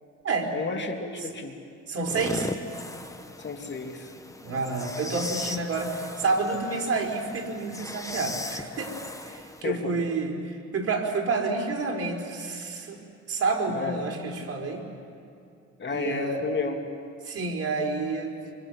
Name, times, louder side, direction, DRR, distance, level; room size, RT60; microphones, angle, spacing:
voice 1, 0.5-1.6 3.4-4.1 9.6-10.0 13.7-14.0 15.8-16.8, left 4 dB, 35° left, 3 dB, 2.7 m, -32 dB
voice 2, 1.9-2.5 4.4-8.9 9.3-13.0 13.3-14.8 15.9-16.4 17.2-18.3, right 3 dB, 50° right, 1 dB, 4.6 m, -29 dB
sound 1, 2.0-9.6, left 2 dB, 10° left, 1.3 m, -38 dB
26.5 x 25.0 x 8.0 m, 2.5 s
cardioid pair, 90°, 30 cm